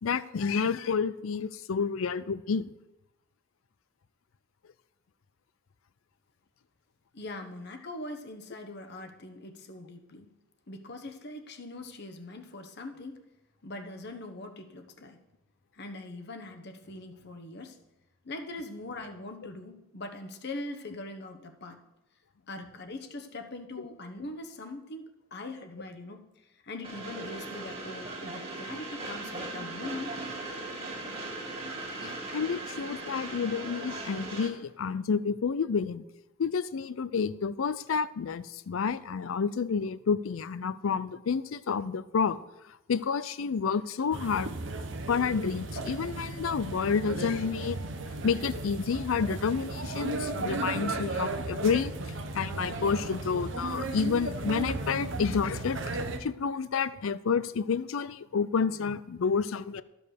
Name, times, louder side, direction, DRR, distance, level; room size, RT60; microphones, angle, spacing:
voice 1, 0.0-2.7 32.0-36.0 36.4-42.4 42.9-44.5 45.1-47.8 48.2-51.9 52.3-55.9 56.2-59.8, left 5 dB, 80° left, 16 dB, 0.5 m, -29 dB
voice 2, 7.1-10.3 10.7-13.2 13.6-15.2 15.7-17.8 18.2-21.8 22.5-26.3 26.6-30.2, left 2 dB, 55° left, 6 dB, 1.1 m, -42 dB
Train, 26.8-34.5, right 2 dB, 30° right, 2.2 m, -38 dB
sound 1, 44.1-56.2, right 2 dB, 65° right, 0.9 m, -35 dB
13.0 x 5.3 x 6.5 m, 0.94 s
head